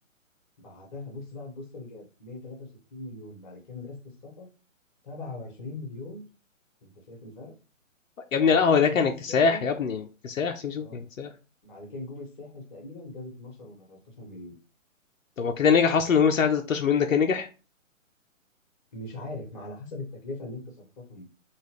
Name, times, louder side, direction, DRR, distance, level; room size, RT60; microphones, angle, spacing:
voice 1, 0.6-2.6 2.9-4.5 5.0-6.2 6.8-7.5 8.4-9.7 10.7-11.0 11.6-14.5 18.9-21.2, left 2 dB, 35° left, 0 dB, 1.6 m, -41 dB
voice 2, 8.3-11.3 15.4-17.5, left 6 dB, 80° left, 5 dB, 0.6 m, -23 dB
3.7 x 2.4 x 3.1 m, 0.34 s
figure-of-eight pair, 135°, 39 cm